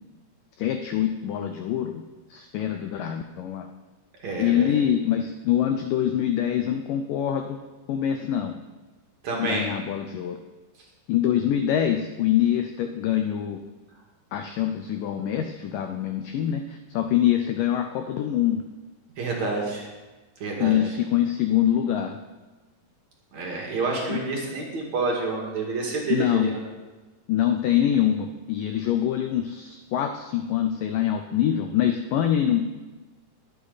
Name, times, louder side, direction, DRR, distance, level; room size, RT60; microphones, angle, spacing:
voice 1, 0.6-2.0 2.3-3.7 4.4-7.6 7.9-8.6 9.4-10.4 11.1-13.6 14.3-18.6 20.6-22.2 24.1-24.2 26.1-26.5 27.3-32.6, left 10 dB, 80° left, 6 dB, 2.0 m, -24 dB
voice 2, 4.2-4.7 9.2-9.7 19.2-19.9 20.4-21.0 23.3-26.6, right 3 dB, 50° right, -1 dB, 2.9 m, -28 dB
20.5 x 8.3 x 4.1 m, 1.2 s
omnidirectional pair, 4.6 m